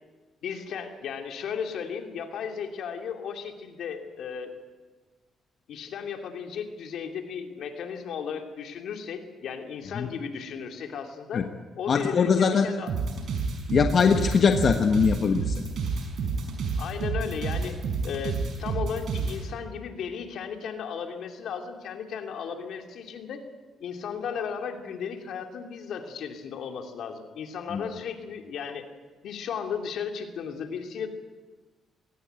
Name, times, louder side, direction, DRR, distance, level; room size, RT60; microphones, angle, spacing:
voice 1, 0.4-4.5 5.7-11.4 11.8-12.9 16.8-17.8 18.0-23.4 23.8-28.9 29.2-31.1, left 7 dB, 75° left, 4 dB, 2.7 m, -35 dB
voice 2, 11.9-12.7 13.7-15.6 27.7-27.8, left 6 dB, 50° left, 5 dB, 1.3 m, -22 dB
sound 1, 12.9-19.4, right 4 dB, 65° right, 5.6 m, -29 dB
21.5 x 18.5 x 9.0 m, 1.3 s
cardioid pair, 90°, 0 cm